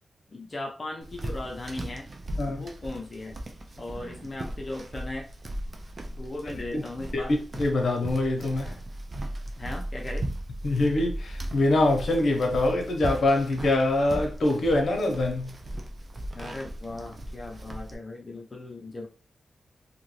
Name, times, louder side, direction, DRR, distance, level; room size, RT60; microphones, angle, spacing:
voice 1, 0.3-2.1 2.4-3.4 3.8-5.3 6.2-7.4 9.6-10.3 16.3-19.1, left 2 dB, 35° left, 0.7 m, -37 dB
sound 1, 1.0-18.0, right 1 dB, 45° right, 0.5 m, -37 dB
voice 2, 7.6-8.7 10.6-15.5, left 2 dB, 65° left, 0.9 m, -24 dB
2.8 x 2.5 x 3.0 m
cardioid pair, 80°, 0 cm